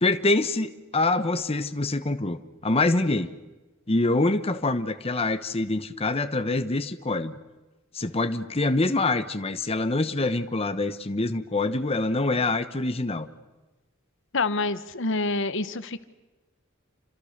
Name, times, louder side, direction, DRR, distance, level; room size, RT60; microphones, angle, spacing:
voice 1, 0.0-3.3 3.9-7.4 7.9-13.3, left 2 dB, 30° left, 9 dB, 1.0 m, -25 dB
voice 2, 14.3-16.0, left 3 dB, 65° left, 13 dB, 1.2 m, -27 dB
28.5 x 26.5 x 6.6 m, 1.1 s
head